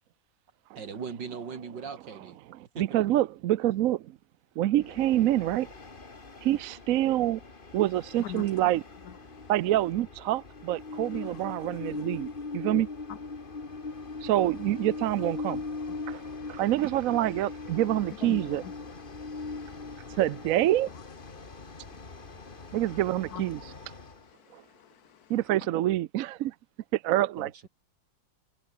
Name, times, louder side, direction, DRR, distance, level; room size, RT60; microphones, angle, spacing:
voice 1, 0.8-2.4 2.7-2.9 27.1-27.7, right 6 dB, 85° right, 3.0 m, -39 dB
voice 2, 2.8-4.0 4.6-5.7 6.4-7.4 7.7-8.8 9.5-12.3 12.5-12.9 14.2-15.6 16.1-16.2 16.5-18.6 20.1-20.9 22.7-23.7 25.3-26.5 26.9-27.5, right 13 dB, 70° right, 0.8 m, -26 dB
Train, 4.8-24.3, left 3 dB, 30° left, 2.1 m, -41 dB
voice 3, 15.9-16.6 18.2-18.7 19.1-20.2 21.4-22.8 23.3-23.4 24.0-25.3, left 11 dB, 65° left, 1.3 m, -47 dB
omnidirectional pair, 1.9 m